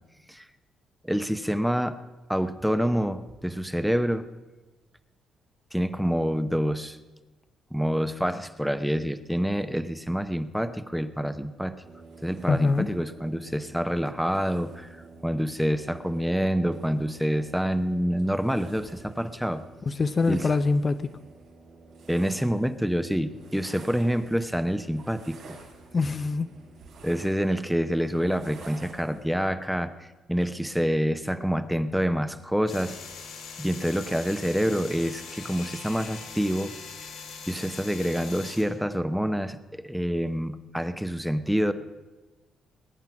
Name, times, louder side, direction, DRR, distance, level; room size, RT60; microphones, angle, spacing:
voice 1, 1.0-2.0 2.3-4.3 5.7-7.0 7.7-11.7 12.2-15.0 15.2-19.6 20.3-20.5 22.1-25.4 27.0-33.0 33.6-36.7 37.0-37.1 37.5-39.6 39.8-41.7, equal, ahead, 10 dB, 0.7 m, -27 dB
sound 1, 11.8-29.2, right 3 dB, 80° right, 4.3 m, -49 dB
voice 2, 12.5-12.9 19.9-21.1 25.9-26.5, left 4 dB, 35° left, 10 dB, 0.6 m, -24 dB
sound 2, 32.7-38.6, left 5 dB, 90° left, 3.4 m, -41 dB
20.5 x 9.1 x 5.9 m, 1.2 s
cardioid pair, 90°, 0 cm